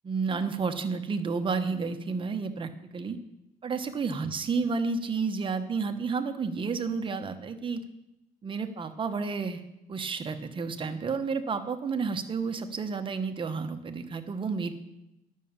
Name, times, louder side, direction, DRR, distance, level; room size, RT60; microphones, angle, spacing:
voice 1, 0.0-3.2 3.6-7.8 8.4-9.6 9.9-14.7, right 4 dB, 30° right, 7 dB, 1.1 m, -31 dB
10.5 x 6.4 x 7.2 m, 0.90 s
cardioid pair, 110°, 17 cm